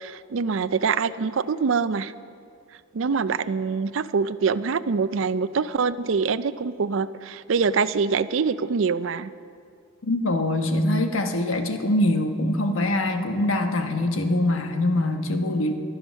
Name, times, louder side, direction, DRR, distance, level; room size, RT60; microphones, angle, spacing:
voice 1, 0.0-2.1 2.9-9.3, right 5 dB, 70° right, 15 dB, 0.4 m, -24 dB
voice 2, 10.0-15.7, left 1 dB, 75° left, 5 dB, 1.2 m, -23 dB
23.5 x 7.9 x 6.3 m, 2.3 s
head